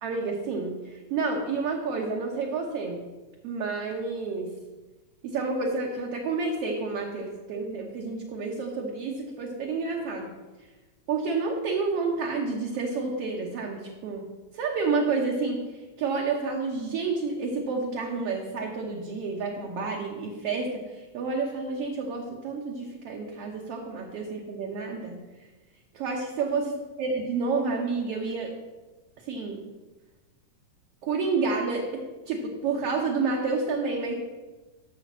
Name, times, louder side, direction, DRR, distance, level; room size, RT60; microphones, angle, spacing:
voice 1, 0.0-3.0 3.4-4.5 5.2-10.3 11.1-14.2 14.5-25.2 25.9-26.7 27.0-28.5 29.2-29.6 31.0-34.1, right 4 dB, 65° right, -1 dB, 1.7 m, -29 dB
6.7 x 6.4 x 7.2 m, 1.2 s
omnidirectional pair, 3.5 m